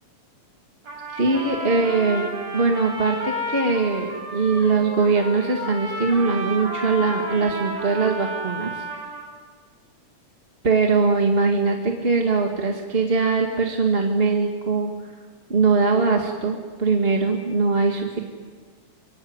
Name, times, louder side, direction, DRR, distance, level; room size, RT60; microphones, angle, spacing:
Trumpet, 0.8-9.3, equal, 60° right, 8.2 m, -32 dB
voice 1, 1.1-8.9 10.6-14.9 15.5-18.2, right 4 dB, 20° right, 2 dB, 1.8 m, -21 dB
25.5 x 23.5 x 9.6 m, 1.5 s
omnidirectional pair, 3.4 m